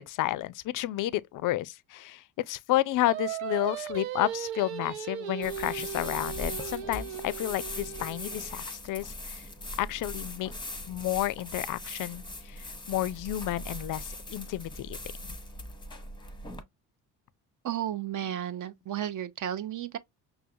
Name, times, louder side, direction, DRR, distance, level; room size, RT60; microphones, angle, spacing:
voice 1, 0.0-9.4 9.8-10.5 10.9-15.0 15.2-15.4, left 15 dB, 45° left, 0.4 m, -31 dB
Singing, 3.1-8.4, right 10 dB, 80° right, 0.6 m, -37 dB
sound 1, 5.4-16.6, left 1 dB, 10° left, 0.8 m, -40 dB
voice 2, 17.6-20.0, right 11 dB, 40° right, 0.6 m, -33 dB
5.4 x 2.2 x 2.6 m
hypercardioid pair, 55°, 48 cm